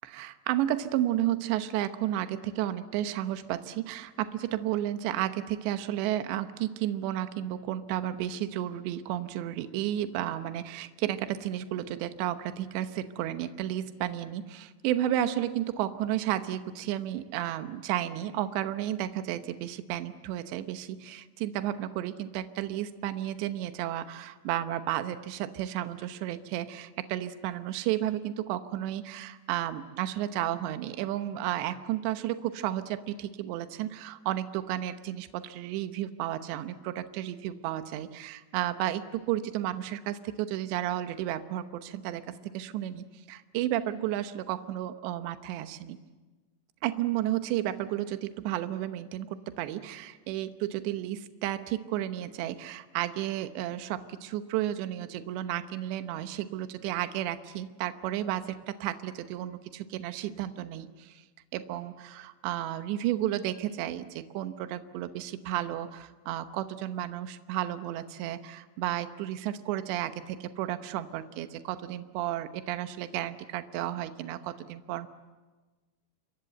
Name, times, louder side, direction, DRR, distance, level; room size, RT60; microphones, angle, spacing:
voice 1, 0.1-42.2 42.5-46.0 46.8-61.2 61.5-75.1, right 12 dB, 75° right, 10 dB, 3.1 m, -32 dB
28.5 x 25.5 x 8.0 m, 1.3 s
omnidirectional pair, 5.5 m